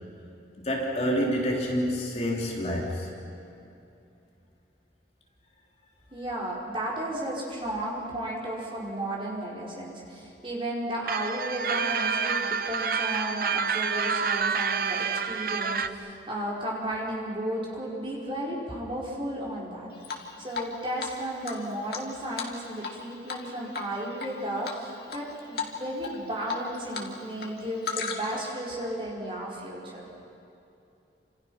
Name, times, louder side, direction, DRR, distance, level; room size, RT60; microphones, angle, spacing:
voice 1, 0.6-3.1, equal, 35° left, -2 dB, 3.2 m, -28 dB
voice 2, 6.1-30.1, right 1 dB, 30° right, -4 dB, 5.3 m, -34 dB
sound 1, 11.1-15.9, right 6 dB, 50° right, 0.8 m, -28 dB
Drip, 20.0-20.7 21.0-21.1 21.4-23.0 23.3-23.5 23.7-24.3 24.6-25.2 25.6-25.7 26.0-27.1 27.3-28.5, left 5 dB, 55° left, 2.5 m, -34 dB
29.0 x 27.5 x 5.9 m, 2.8 s
head